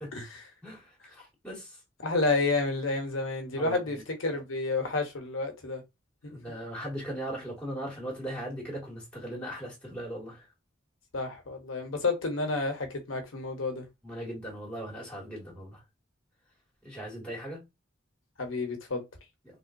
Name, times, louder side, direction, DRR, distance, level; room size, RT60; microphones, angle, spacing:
voice 1, 0.1-0.4 2.0-5.8 6.2-6.3 11.1-13.9 18.4-19.0, left 3 dB, 75° left, 1.0 m, -30 dB
voice 2, 0.6-1.8 3.6-3.8 6.3-10.5 14.0-15.8 16.8-17.6, right 1 dB, 5° left, 1.9 m, -38 dB
3.5 x 3.0 x 2.5 m
head